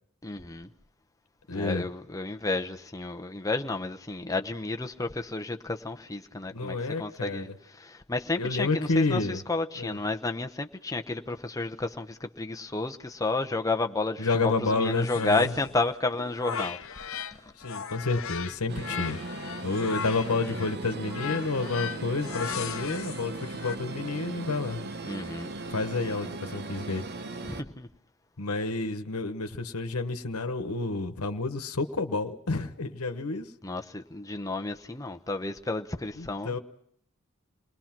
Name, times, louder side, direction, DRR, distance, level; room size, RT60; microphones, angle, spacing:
voice 1, 0.2-0.7 1.5-7.5 7.8-9.2 9.5-17.2 25.1-25.5 27.4-27.9 33.6-36.6, left 3 dB, 15° left, 0.9 m, -31 dB
voice 2, 1.5-1.9 6.5-7.6 8.4-9.4 9.8-10.0 14.2-15.5 17.6-19.2 19.6-24.9 25.7-27.0 28.4-33.5 36.2-36.6, left 3 dB, 90° left, 1.2 m, -30 dB
sound 1, 14.8-17.4 17.6-23.8, left 7 dB, 65° left, 0.8 m, -38 dB
sound 2, 18.7-27.6, right 3 dB, 50° right, 1.0 m, -38 dB
28.5 x 20.5 x 6.0 m
head